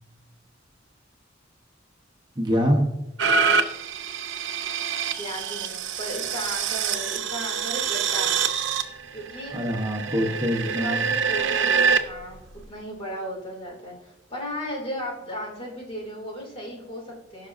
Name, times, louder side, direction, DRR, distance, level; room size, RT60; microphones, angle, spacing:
voice 1, 2.4-2.8 9.5-11.0, equal, 25° right, 1 dB, 0.9 m, -24 dB
sound 1, 3.2-12.0 12.6-12.7, right 6 dB, 70° right, 0.7 m, -26 dB
voice 2, 5.2-8.4 9.1-9.6 10.5-12.4 12.7-17.5, equal, 30° left, -1 dB, 2.5 m, -35 dB
15.0 x 6.0 x 2.6 m, 0.92 s
head